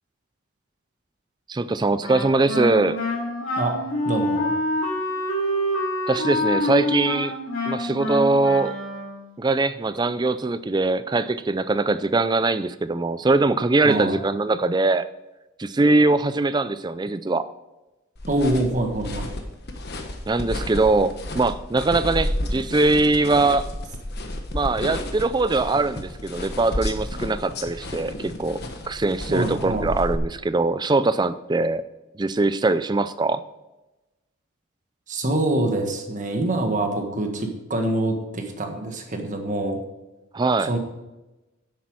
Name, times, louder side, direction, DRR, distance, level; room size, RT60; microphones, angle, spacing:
voice 1, 1.5-3.0 6.1-7.4 7.7-8.7 9.4-15.1 15.6-17.5 20.3-23.7 24.5-28.6 28.9-31.8 32.2-33.4 40.3-40.7, right 2 dB, 20° right, 14 dB, 0.4 m, -22 dB
Wind instrument woodwind instrument, 2.0-9.3, left 1 dB, 70° left, 3.3 m, -26 dB
voice 2, 4.0-4.5 13.8-14.2 18.3-19.3 29.3-29.9 35.1-39.8 40.6-40.8, right 1 dB, 35° right, 4 dB, 1.5 m, -25 dB
sound 1, 18.2-30.2, left 1 dB, 50° left, 1.3 m, -32 dB
10.0 x 8.4 x 4.8 m, 1.0 s
head